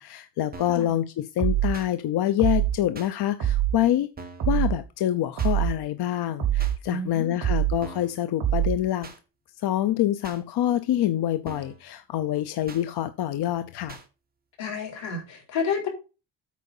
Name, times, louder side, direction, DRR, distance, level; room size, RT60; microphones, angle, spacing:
voice 1, 0.0-4.1 4.5-9.1 9.6-14.0, left 12 dB, 60° left, 0.7 m, -26 dB
sound 1, 0.5-0.9 1.7-1.9 2.9-3.1 4.2-4.5 5.4-5.5 6.6-6.8 7.8-8.2 9.0-9.2 10.2-10.4 11.4-11.8 12.7-12.8 13.9-14.1, right 3 dB, 20° right, 1.3 m, -42 dB
sound 2, 1.4-1.8 2.4-2.8 3.4-3.8 4.4-4.8 5.4-5.8 6.4-6.8 7.4-7.8 8.4-8.8, right 12 dB, 60° right, 3.1 m, -24 dB
voice 2, 6.9-7.4 14.6-15.9, left 5 dB, 90° left, 3.9 m, -30 dB
8.4 x 4.9 x 5.5 m
cardioid pair, 175°, 43 cm